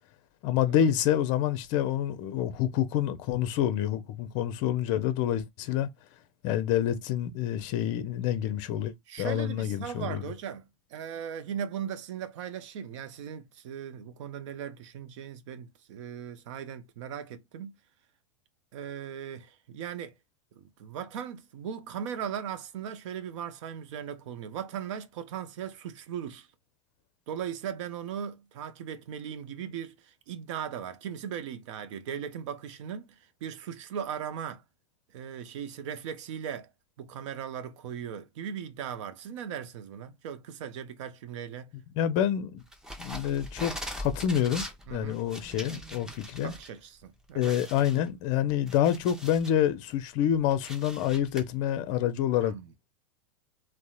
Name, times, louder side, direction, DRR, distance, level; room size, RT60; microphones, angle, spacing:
voice 1, 0.4-5.9 6.4-10.2 42.0-42.6 43.0-46.5 47.3-52.5, left 10 dB, 45° left, 0.5 m, -27 dB
voice 2, 9.1-17.7 18.7-20.1 20.6-26.5 27.3-34.6 35.1-36.7 37.0-41.7 44.9-45.2 46.4-47.5 52.4-52.7, right 8 dB, 65° right, 0.5 m, -38 dB
sound 1, 42.7-46.7 47.0-47.1 47.4-49.6 50.0-51.4, equal, 5° right, 0.6 m, -41 dB
2.7 x 2.1 x 2.2 m
hypercardioid pair, 100°, 17 cm